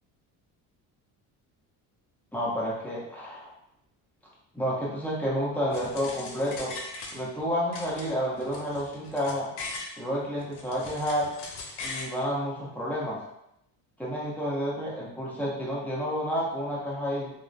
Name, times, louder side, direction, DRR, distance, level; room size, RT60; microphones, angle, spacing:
voice 1, 2.3-3.5 4.5-6.7 7.1-9.5 10.0-11.3 11.8-13.2 14.0-17.3, equal, 5° left, -6 dB, 0.9 m, -30 dB
sound 1, 5.7-7.4 7.7-9.9 10.4-12.1, left 3 dB, 75° left, 0.7 m, -40 dB
2.9 x 2.1 x 2.5 m, 0.79 s
cardioid pair, 95°, 41 cm